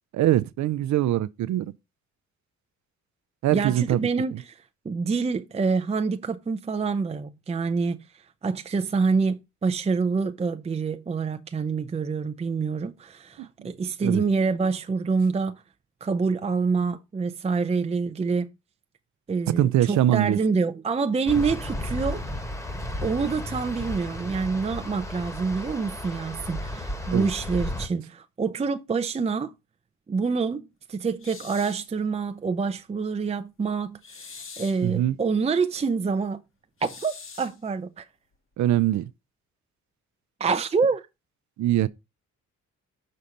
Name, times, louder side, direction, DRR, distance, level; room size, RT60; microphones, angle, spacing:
voice 1, 0.1-1.7 3.4-4.0 13.4-13.7 14.0-14.2 19.6-20.4 27.1-27.3 34.8-35.2 38.6-39.1 41.6-41.9, right 13 dB, 70° right, 0.6 m, -23 dB
voice 2, 3.5-8.0 8.4-15.6 16.0-18.5 19.3-22.2 23.0-29.5 30.1-36.4 36.8-38.1 40.4-41.0, right 4 dB, 20° right, 0.6 m, -26 dB
sound 1, 21.3-27.9, left 1 dB, 10° left, 1.3 m, -33 dB
sound 2, 31.2-31.9 34.0-34.9 36.8-37.6, left 5 dB, 45° left, 1.6 m, -43 dB
6.4 x 4.2 x 5.2 m
cardioid pair, 90°, 30 cm